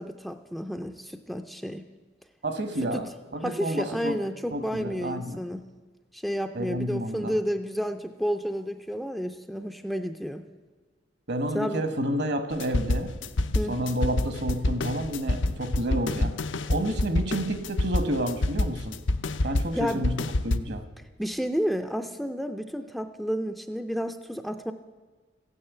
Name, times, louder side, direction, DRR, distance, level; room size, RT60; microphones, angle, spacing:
voice 1, 0.0-1.9 2.9-3.1 3.4-5.6 6.1-10.4 11.5-11.8 13.5-13.9 19.7-20.1 21.2-24.7, equal, ahead, 6 dB, 0.4 m, -31 dB
voice 2, 2.4-4.1 4.5-5.4 6.5-7.3 11.3-13.2 13.7-16.3 16.7-19.0 19.4-20.8, right 1 dB, 60° right, 9 dB, 1.2 m, -30 dB
sound 1, 12.5-20.6, left 2 dB, 85° left, 0.7 m, -27 dB
15.0 x 9.7 x 8.1 m, 1.4 s
head